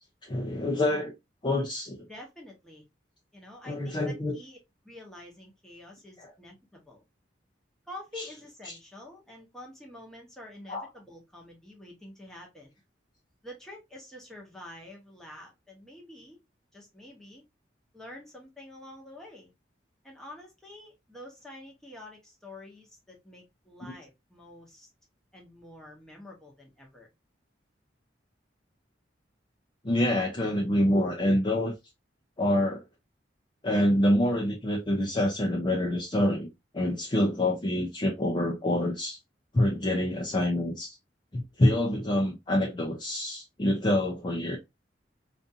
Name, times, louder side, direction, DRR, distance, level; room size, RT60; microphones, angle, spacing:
voice 1, 0.2-1.1 1.4-2.1 3.7-4.3 6.2-6.3 8.2-8.3 8.7-8.8 10.7-10.9 29.8-31.7 32.4-32.8 33.6-36.5 36.7-39.2 39.5-41.0 41.3-44.6, left 1 dB, 25° left, 0.4 m, -26 dB
voice 2, 2.1-2.8 3.3-4.6 4.8-7.0 7.9-12.8 13.4-16.4 16.7-17.4 17.9-19.5 20.0-24.9 25.3-27.1, left 1 dB, 5° left, 0.8 m, -47 dB
2.5 x 2.4 x 2.6 m
head